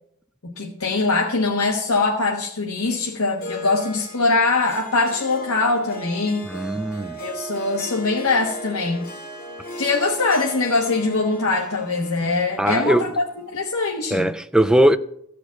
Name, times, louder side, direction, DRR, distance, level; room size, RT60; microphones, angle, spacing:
voice 1, 0.4-6.5 7.2-9.0 9.8-13.2 13.5-14.3, left 3 dB, 70° left, 1.3 m, -22 dB
Harp, 3.4-14.0, right 1 dB, 40° left, 3.0 m, -38 dB
voice 2, 6.5-7.2 12.6-13.1 14.1-15.0, right 1 dB, 5° right, 0.4 m, -19 dB
14.5 x 5.0 x 8.4 m
head